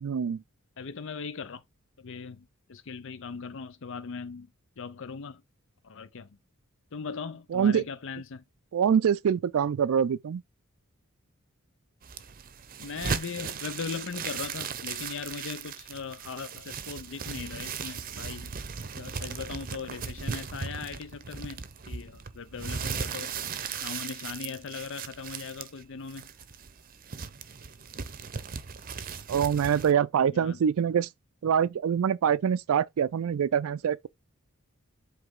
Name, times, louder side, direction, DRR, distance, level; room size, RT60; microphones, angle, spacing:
voice 1, 0.0-0.4 7.5-7.8 8.7-10.4 29.3-31.1 31.4-34.1, right 8 dB, 80° right, 0.4 m, -25 dB
voice 2, 0.8-1.6 2.0-4.5 4.8-5.4 5.8-6.3 6.9-8.4 12.8-18.5 19.0-23.3 23.8-26.3 30.3-30.6, left 5 dB, 60° left, 0.6 m, -39 dB
sound 1, 12.0-29.9, right 6 dB, 40° right, 0.7 m, -37 dB
7.9 x 3.3 x 3.7 m
head